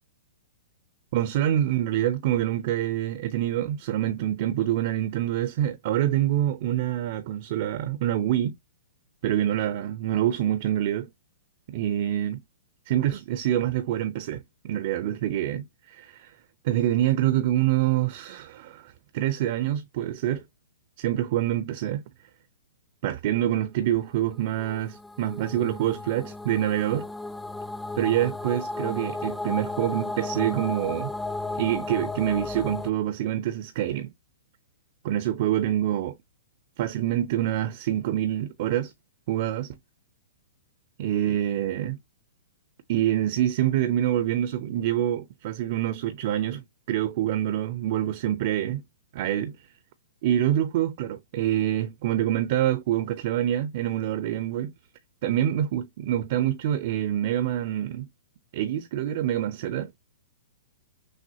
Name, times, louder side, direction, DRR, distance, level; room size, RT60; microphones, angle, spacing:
voice 1, 1.1-8.6 9.2-11.1 11.7-12.4 12.9-16.3 16.6-20.4 21.0-22.0 23.0-27.1 28.0-31.1 31.5-34.1 35.0-36.2 36.8-38.9 39.3-39.8 41.0-42.0 42.9-48.8 49.1-49.6 50.2-54.7 55.2-58.1 58.5-59.9, right 12 dB, 50° right, 0.6 m, -26 dB
sound 1, 24.4-32.9, left 2 dB, 5° left, 0.3 m, -34 dB
6.3 x 2.2 x 2.7 m
hypercardioid pair, 125°, 0 cm